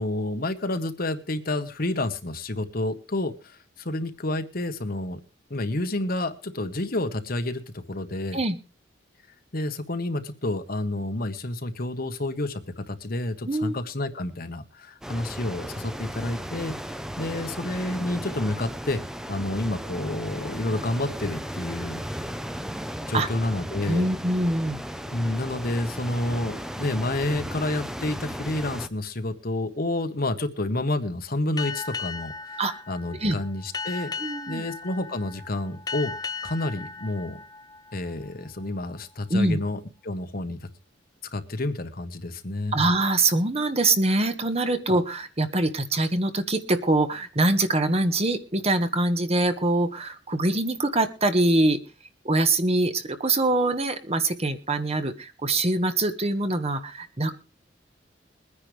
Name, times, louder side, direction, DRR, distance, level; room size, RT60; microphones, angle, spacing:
voice 1, 0.0-5.2 5.5-8.4 9.5-16.7 17.2-19.0 19.3-22.0 23.0-24.1 25.1-32.6 32.9-34.1 34.5-36.1 36.4-37.4 37.9-40.7 41.3-42.7 44.7-44.8, left 2 dB, 50° left, 8 dB, 1.4 m, -29 dB
voice 2, 13.4-13.8 23.1-23.3 23.9-24.8 32.6-32.7 33.2-33.4 34.2-34.6 39.3-39.6 42.7-51.8 52.2-57.3, right 2 dB, 35° right, 9 dB, 1.3 m, -24 dB
sound 1, 15.0-28.9, equal, 5° right, 0.7 m, -35 dB
Boat Water vehicle, 31.6-38.6, left 4 dB, 20° left, 1.0 m, -37 dB
22.5 x 9.9 x 3.4 m, 0.32 s
head